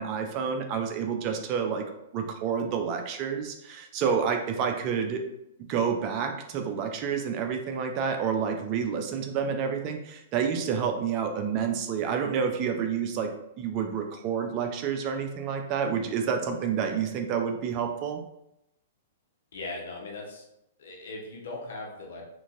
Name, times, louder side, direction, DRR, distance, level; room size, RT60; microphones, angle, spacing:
voice 1, 0.0-1.8 2.1-5.3 5.7-13.3 13.6-18.2, right 7 dB, 40° right, 5 dB, 0.4 m, -29 dB
voice 2, 19.5-20.4 20.8-22.2, left 2 dB, 70° left, 0 dB, 0.9 m, -39 dB
3.0 x 2.6 x 2.5 m, 0.81 s
hypercardioid pair, 120°, 0 cm